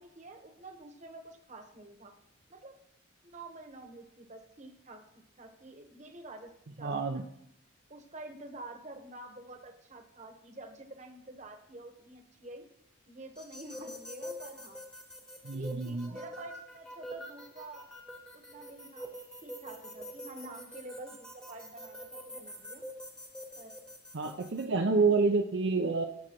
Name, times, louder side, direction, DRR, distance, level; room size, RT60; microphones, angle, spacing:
voice 1, 0.0-2.1 2.5-2.7 3.2-5.1 5.4-7.4 7.9-12.7 13.1-14.8 15.5-17.9 18.3-19.1 19.4-22.8 23.6-23.8 24.8-25.1, right 2 dB, 35° right, 5 dB, 1.1 m, -48 dB
voice 2, 6.8-7.3 15.4-16.1 24.1-26.1, right 4 dB, 55° right, 3 dB, 0.6 m, -28 dB
sound 1, 13.4-24.6, equal, 5° left, 1.1 m, -46 dB
18.5 x 6.4 x 3.0 m, 0.77 s
head